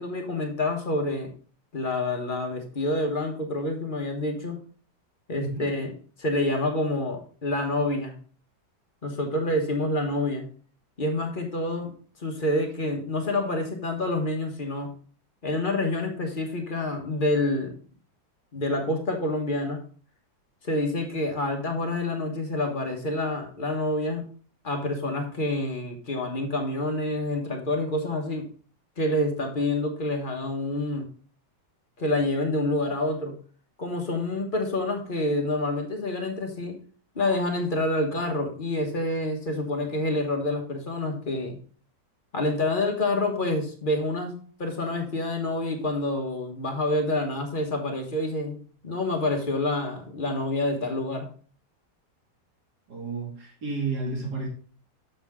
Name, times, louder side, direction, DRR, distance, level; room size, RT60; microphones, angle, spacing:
voice 1, 0.0-1.3 1.7-4.6 5.3-5.9 6.2-8.1 9.0-10.5 11.0-11.9 12.2-14.9 15.4-17.7 18.5-19.8 20.6-24.2 24.6-28.5 29.0-31.1 32.0-33.4 33.8-36.8 37.1-41.6 42.3-51.3, left 2 dB, 35° left, 3 dB, 1.2 m, -27 dB
voice 2, 5.4-5.7 52.9-54.5, right 4 dB, 65° right, -1 dB, 2.8 m, -31 dB
6.9 x 6.7 x 3.5 m, 0.42 s
omnidirectional pair, 1.9 m